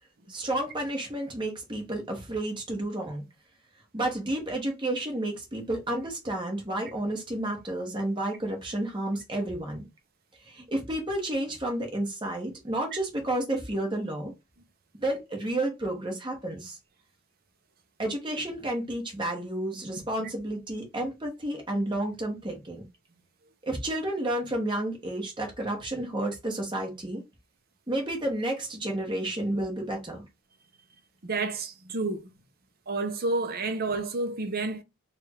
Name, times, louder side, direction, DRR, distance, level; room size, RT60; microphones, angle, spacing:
voice 1, 0.3-3.2 3.9-9.8 10.4-14.3 15.0-16.8 18.0-22.8 23.6-27.2 27.9-30.2, right 1 dB, 20° right, 1.1 m, -31 dB
voice 2, 31.2-32.3 32.9-34.8, right 3 dB, 45° right, 0.6 m, -30 dB
3.4 x 2.4 x 4.3 m
head